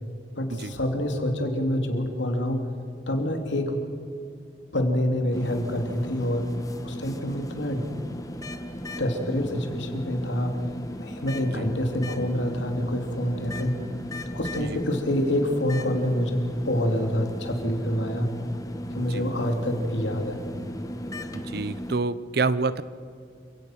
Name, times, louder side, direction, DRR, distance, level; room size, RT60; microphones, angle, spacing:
voice 1, 0.3-2.7 3.1-3.8 4.7-6.5 6.8-7.8 9.0-13.8 14.3-18.3 18.9-20.4, left 1 dB, 85° left, 4 dB, 2.9 m, -27 dB
sound 1, 5.3-22.0, equal, 20° left, 1.2 m, -37 dB
voice 2, 21.3-22.8, right 3 dB, 60° right, 16 dB, 0.7 m, -28 dB
28.5 x 17.0 x 5.9 m, 2.5 s
head